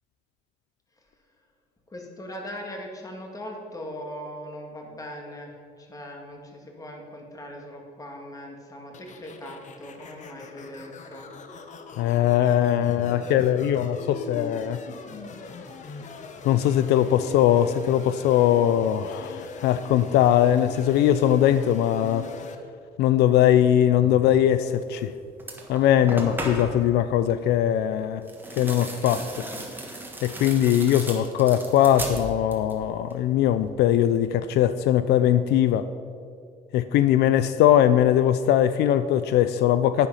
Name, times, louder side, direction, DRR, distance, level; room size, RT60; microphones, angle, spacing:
voice 1, 1.9-5.5 5.8-11.3, equal, 20° left, 1 dB, 2.1 m, -40 dB
sound 1, 8.9-22.5, left 4 dB, 45° left, 1.0 m, -41 dB
voice 2, 12.0-14.8 16.4-22.3 23.0-25.1 25.7-28.2 28.6-29.4 30.2-35.9 36.7-40.1, left 11 dB, 75° left, 12 dB, 0.4 m, -21 dB
sound 2, 24.9-25.1 25.4-26.9 28.2-32.8 33.1-33.7, right 1 dB, 10° right, 1.7 m, -36 dB
10.0 x 9.1 x 5.6 m, 2.4 s
cardioid pair, 110°, 17 cm